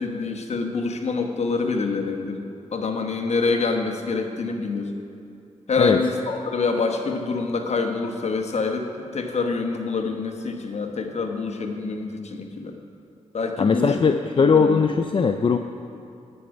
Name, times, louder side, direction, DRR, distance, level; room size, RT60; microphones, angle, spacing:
voice 1, 0.0-2.4 2.7-4.9 5.7-12.7 13.3-13.9 14.4-14.8, left 4 dB, 60° left, 3 dB, 1.1 m, -26 dB
voice 2, 13.6-15.6, left 5 dB, 40° left, 7 dB, 0.4 m, -19 dB
10.0 x 8.9 x 5.2 m, 2.7 s
cardioid pair, 75°, 13 cm